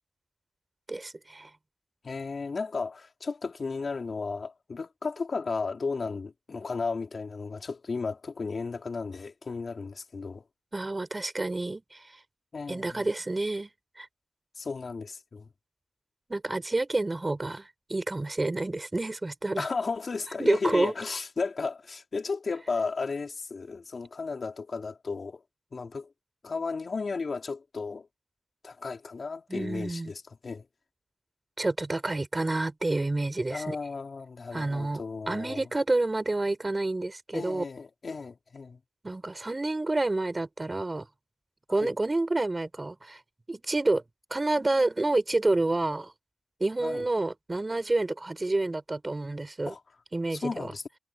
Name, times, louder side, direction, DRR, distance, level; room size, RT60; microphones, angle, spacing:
voice 1, 0.9-1.5 10.7-12.1 12.7-13.7 14.0-14.1 16.3-19.7 20.4-20.9 29.5-30.1 31.6-33.8 34.5-35.0 35.3-37.6 39.0-41.1 41.7-43.2 43.5-44.0 44.3-46.1 46.6-49.7 50.1-50.7, right 2 dB, 25° right, 5.5 m, -29 dB
voice 2, 2.0-10.4 12.5-13.1 14.6-15.5 19.6-25.4 25.7-26.1 26.4-28.1 28.6-30.7 33.5-35.6 37.3-38.8 41.7-41.9 46.8-47.1 49.6-49.8 50.3-50.8, left 4 dB, 50° left, 3.2 m, -34 dB
wide cardioid pair, 105°, 0 cm